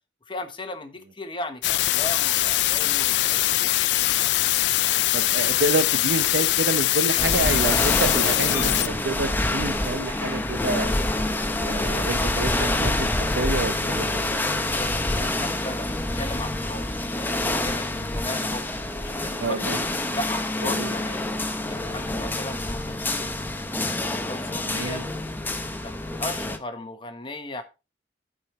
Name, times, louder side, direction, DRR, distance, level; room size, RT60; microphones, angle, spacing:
voice 1, 0.3-4.3 14.7-18.6 19.0-19.9 20.1-21.2 21.7-23.3 24.0-25.0 25.8-25.9 26.2-27.6, left 2 dB, 30° left, 1.2 m, -36 dB
sound 1, 1.6-8.9, left 16 dB, 70° left, 0.3 m, -22 dB
voice 2, 5.1-10.9 11.6-14.2 19.4-19.8 20.6-20.9 24.7-25.1, right 2 dB, 70° right, 0.9 m, -28 dB
sound 2, 7.2-26.6, left 2 dB, 10° left, 0.8 m, -27 dB
9.8 x 5.0 x 4.3 m
head